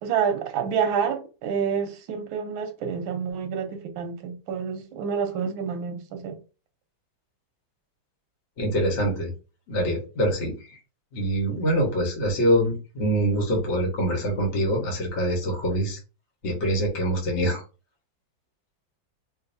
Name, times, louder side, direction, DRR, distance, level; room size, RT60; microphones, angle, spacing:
voice 1, 0.0-6.4, right 7 dB, 90° right, 1.6 m, -28 dB
voice 2, 8.6-9.3 9.7-10.5 11.1-16.0 16.4-17.6, equal, 40° left, 1.4 m, -24 dB
4.9 x 2.6 x 2.6 m
omnidirectional pair, 2.1 m